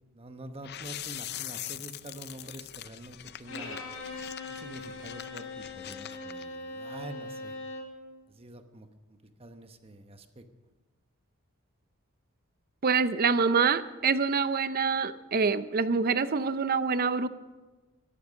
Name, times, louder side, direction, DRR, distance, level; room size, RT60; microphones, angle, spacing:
voice 1, 0.1-3.8 4.5-7.6 8.3-10.4, right 1 dB, 30° right, 7 dB, 1.0 m, -46 dB
sound 1, 0.6-6.5, left 12 dB, 50° left, 0.5 m, -42 dB
Bowed string instrument, 3.5-8.0, left 2 dB, 75° left, 3.6 m, -40 dB
voice 2, 12.8-17.3, right 5 dB, 45° right, 13 dB, 0.6 m, -26 dB
14.0 x 12.0 x 6.4 m, 1.2 s
head